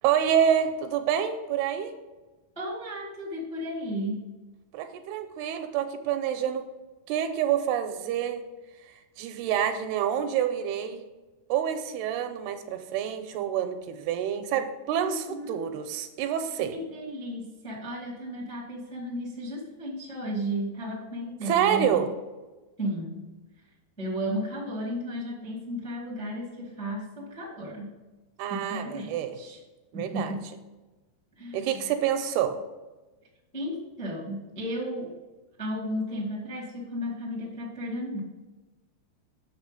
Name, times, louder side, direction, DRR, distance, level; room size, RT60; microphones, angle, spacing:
voice 1, 0.0-1.9 4.7-6.6 7.1-8.4 9.2-11.0 11.5-16.7 21.5-22.1 28.4-29.4 29.9-30.3 31.5-32.6, right 9 dB, 85° right, 7 dB, 2.7 m, -27 dB
voice 2, 2.5-4.2 15.0-15.6 16.7-22.0 22.8-23.3 24.0-27.9 28.5-29.6 29.9-30.5 31.4-32.0 33.5-35.1 35.6-38.2, equal, 10° left, -4 dB, 0.4 m, -34 dB
6.8 x 6.3 x 5.2 m, 1.2 s
omnidirectional pair, 4.6 m